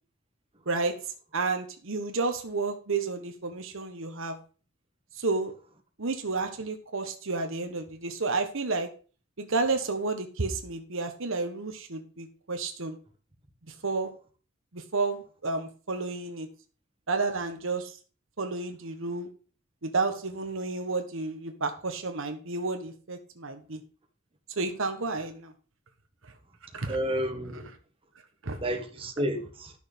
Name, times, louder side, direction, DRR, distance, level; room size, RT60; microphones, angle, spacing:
voice 1, 0.7-1.0 1.3-4.4 5.2-5.5 6.0-8.9 9.4-13.0 13.8-14.1 14.7-16.5 17.1-18.0 18.4-19.3 19.8-23.8 24.6-25.5 26.7-27.0 28.4-28.6, right 3 dB, 70° right, 1.3 m, -31 dB
voice 2, 26.7-27.7 28.6-29.7, equal, 25° right, 1.7 m, -31 dB
11.5 x 6.4 x 5.3 m
head